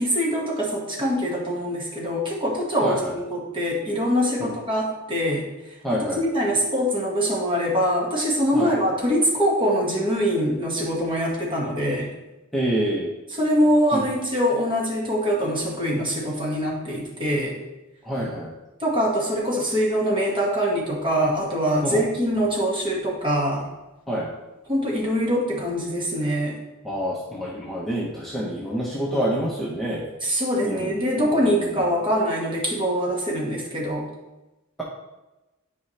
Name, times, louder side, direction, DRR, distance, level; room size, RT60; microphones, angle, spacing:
voice 1, 0.0-5.4 5.9-12.1 13.4-17.5 18.8-23.6 24.7-26.6 30.2-34.1, equal, 25° right, -3 dB, 1.8 m, -23 dB
voice 2, 2.8-3.1 4.4-4.5 5.8-6.2 8.5-8.7 12.5-13.1 13.9-14.0 18.0-18.5 21.8-22.0 24.1-24.3 26.8-30.1 30.6-31.8, equal, ahead, -5 dB, 1.0 m, -27 dB
10.5 x 4.7 x 3.3 m, 1.0 s
head